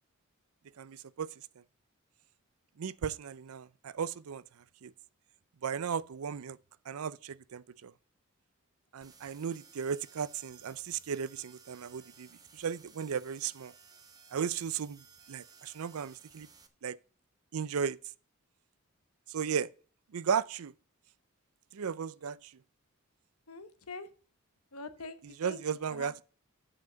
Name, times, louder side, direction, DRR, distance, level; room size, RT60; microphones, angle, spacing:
voice 1, 0.8-1.3 2.8-4.4 4.8-4.9 5.6-6.6 6.9-7.9 8.9-13.7 14.3-16.5 16.8-17.0 17.5-18.0 19.3-19.7 20.1-20.7 21.7-22.5 25.2-26.2, right 7 dB, 75° right, 0.5 m, -35 dB
sound 1, 9.0-16.7, right 5 dB, 15° right, 0.9 m, -58 dB
voice 2, 23.5-24.1 24.7-25.6 25.9-26.2, left 3 dB, 85° left, 1.1 m, -44 dB
7.8 x 5.8 x 6.2 m
head